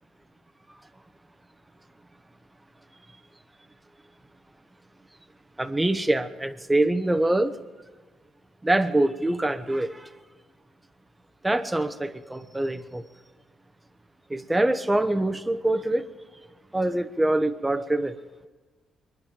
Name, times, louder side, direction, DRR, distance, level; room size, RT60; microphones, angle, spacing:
voice 1, 5.6-7.5 8.6-9.9 11.4-13.0 14.3-16.0 16.7-18.1, right 1 dB, 10° right, 1.1 m, -24 dB
24.5 x 10.5 x 5.2 m
cardioid pair, 90°, 0 cm